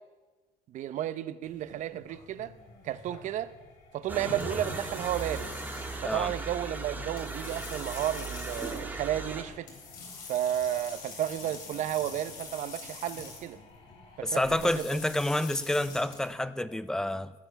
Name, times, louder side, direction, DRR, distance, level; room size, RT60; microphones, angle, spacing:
voice 1, 0.7-2.5 2.8-3.5 3.9-5.5 6.0-9.7 10.3-13.6 14.2-14.9, right 11 dB, 60° right, 14 dB, 0.7 m, -32 dB
sound 1, 1.4-16.3, left 4 dB, 85° left, 3.8 m, -46 dB
sound 2, 2.6-14.6, left 4 dB, 45° left, 3.2 m, -60 dB
sound 3, 4.1-9.4, right 3 dB, 15° right, 2.0 m, -37 dB
voice 2, 14.2-17.3, left 1 dB, 5° left, 14 dB, 0.5 m, -29 dB
16.5 x 7.9 x 5.8 m, 1.2 s
cardioid pair, 135°, 14 cm